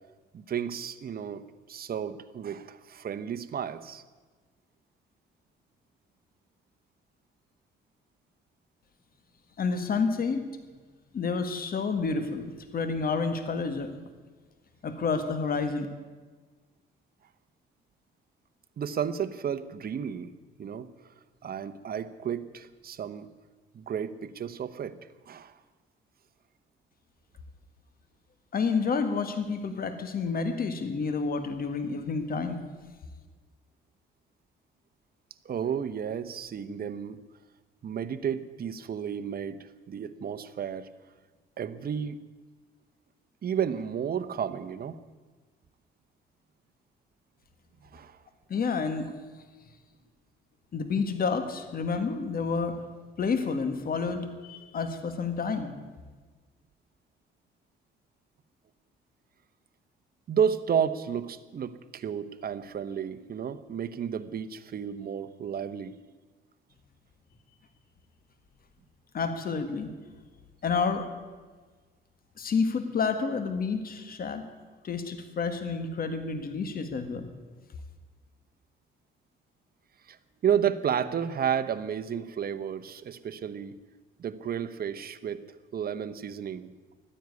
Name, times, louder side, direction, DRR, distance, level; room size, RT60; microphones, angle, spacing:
voice 1, 0.3-1.4 1.7-4.0 18.8-20.3 20.6-20.9 21.4-23.3 23.7-24.9 25.3-25.6 35.4-37.2 37.8-39.6 39.9-40.9 41.6-42.2 43.4-45.0 47.9-48.2 60.3-65.9 80.1-80.2 80.4-83.7 84.2-85.4 85.7-86.7, right 8 dB, 50° right, 11 dB, 1.0 m, -32 dB
voice 2, 9.6-10.4 11.1-13.9 14.8-15.9 28.5-32.6 48.5-49.1 50.7-52.8 53.2-55.7 69.1-69.9 70.6-71.1 72.4-74.4 74.8-77.3, left 5 dB, 50° left, 8 dB, 1.7 m, -29 dB
13.0 x 10.0 x 9.6 m, 1.4 s
cardioid pair, 90°, 20 cm